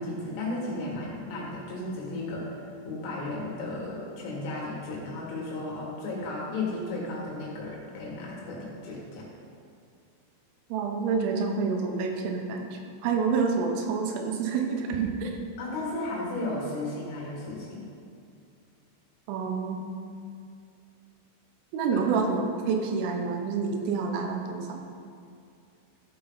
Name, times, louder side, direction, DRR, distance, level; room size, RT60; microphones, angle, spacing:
voice 1, 0.0-2.6 2.9-9.3 15.6-17.8 21.9-22.0, left 2 dB, 75° left, -4 dB, 4.4 m, -34 dB
voice 2, 10.7-15.4 19.3-20.0 21.7-24.9, right 5 dB, 80° right, 3 dB, 3.4 m, -28 dB
14.5 x 5.6 x 4.0 m, 2.4 s
omnidirectional pair, 5.8 m